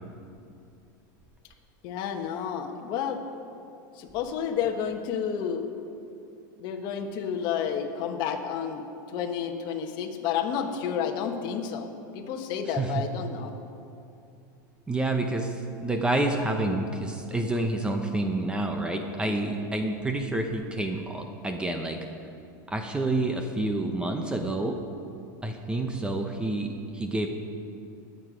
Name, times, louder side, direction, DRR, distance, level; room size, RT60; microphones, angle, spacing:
voice 1, 1.8-3.2 4.0-5.7 6.6-8.8 9.1-11.9 12.1-13.5, left 7 dB, 45° left, 3 dB, 1.3 m, -30 dB
voice 2, 14.9-15.5 15.8-22.0 22.7-24.8 25.4-27.3, right 2 dB, 10° right, 4 dB, 0.8 m, -28 dB
20.5 x 7.8 x 5.1 m, 2.7 s
supercardioid pair, 150°, 11 cm